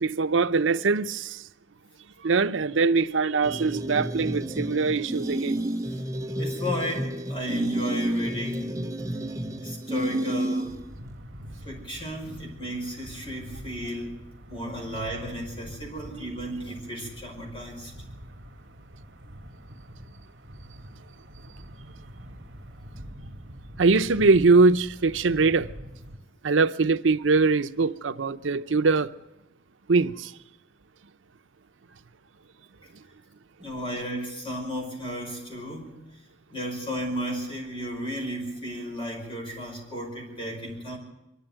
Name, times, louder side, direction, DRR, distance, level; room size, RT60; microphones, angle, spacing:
voice 1, 0.0-1.4 2.2-5.6 23.8-25.7 26.4-29.1 29.9-30.3, right 4 dB, 90° right, 0.7 m, -22 dB
sound 1, 3.4-10.9, right 1 dB, 15° right, 0.8 m, -30 dB
voice 2, 6.4-8.9 9.4-10.8 11.6-14.1 14.5-17.9 33.6-36.0 36.5-41.0, equal, 25° left, 5.3 m, -34 dB
sound 2, 10.6-26.2, equal, 60° right, 2.4 m, -44 dB
23.5 x 12.5 x 9.2 m
head